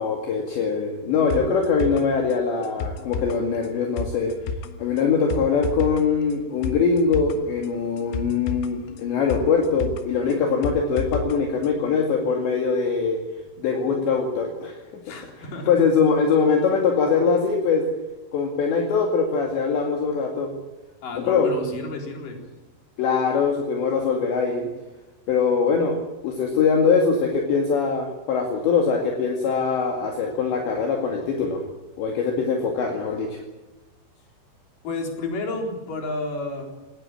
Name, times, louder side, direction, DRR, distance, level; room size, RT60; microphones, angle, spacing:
voice 1, 0.0-4.3 4.8-13.2 13.6-14.8 15.7-17.8 18.3-20.5 21.3-21.5 23.0-24.7 25.3-26.0 26.2-31.6 32.0-33.4, left 5 dB, 65° left, 2 dB, 4.3 m, -22 dB
sound 1, 1.3-11.4 11.6-11.7, left 5 dB, 85° left, 4.0 m, -33 dB
voice 2, 15.0-15.8 21.0-22.4 34.8-36.7, left 2 dB, 45° left, 2 dB, 5.2 m, -31 dB
19.0 x 18.5 x 8.8 m, 1.1 s
omnidirectional pair, 5.8 m